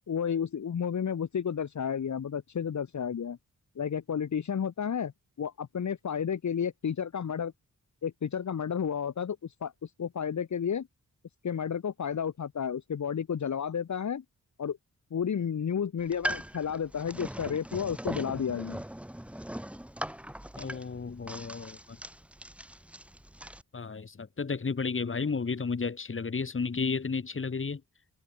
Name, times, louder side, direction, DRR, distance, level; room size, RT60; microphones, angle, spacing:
voice 1, 0.1-3.4 3.8-5.1 5.4-7.5 8.0-10.9 11.4-14.2 14.6-14.8 15.1-18.8, left 7 dB, 60° left, 1.5 m, -32 dB
sound 1, 16.0-23.6, equal, 5° right, 1.9 m, -40 dB
voice 2, 20.6-22.0 23.7-27.8, left 4 dB, 40° left, 2.4 m, -32 dB
wide cardioid pair, 90°, 32 cm